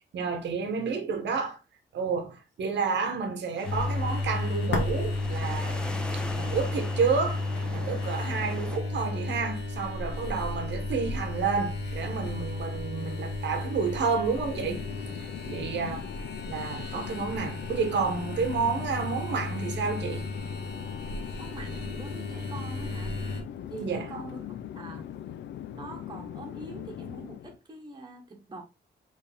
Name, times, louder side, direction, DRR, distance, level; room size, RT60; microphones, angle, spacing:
voice 1, 0.1-1.6 1.9-5.9 6.1-7.4 7.7-14.8 15.5-16.1 16.4-20.2 23.8-24.1, right 5 dB, 90° right, 1.0 m, -30 dB
sound 1, 3.6-23.4, left 2 dB, 70° left, 1.4 m, -33 dB
sound 2, 3.6-8.8, equal, 5° left, 0.5 m, -41 dB
Chatter / Fixed-wing aircraft airplane, 14.1-27.6, left 10 dB, 90° left, 0.4 m, -41 dB
voice 2, 21.4-23.2 23.7-25.0 25.7-28.6, right 3 dB, 25° right, 1.1 m, -44 dB
4.5 x 3.4 x 3.4 m
wide cardioid pair, 145°, 18 cm